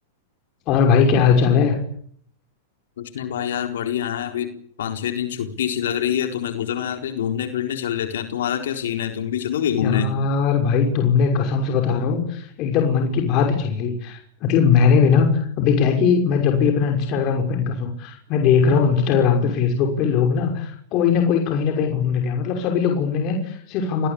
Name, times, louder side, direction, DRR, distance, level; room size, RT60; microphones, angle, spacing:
voice 1, 0.7-1.8 9.8-24.1, left 6 dB, 40° left, 3 dB, 5.9 m, -20 dB
voice 2, 3.0-4.5 4.8-10.1, left 9 dB, 80° left, 6 dB, 4.1 m, -25 dB
29.5 x 20.0 x 8.7 m, 0.64 s
supercardioid pair, 140°, 0 cm